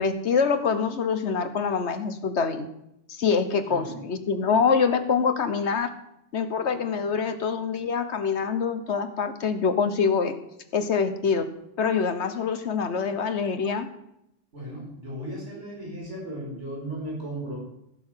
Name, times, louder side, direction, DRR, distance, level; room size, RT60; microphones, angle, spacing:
voice 1, 0.0-2.7 3.1-5.9 6.3-10.3 10.7-11.5 11.8-13.9, left 5 dB, 70° left, 9 dB, 1.3 m, -25 dB
voice 2, 14.5-17.6, right 1 dB, 75° right, -4 dB, 5.1 m, -36 dB
16.0 x 6.9 x 5.7 m, 0.80 s
omnidirectional pair, 1.2 m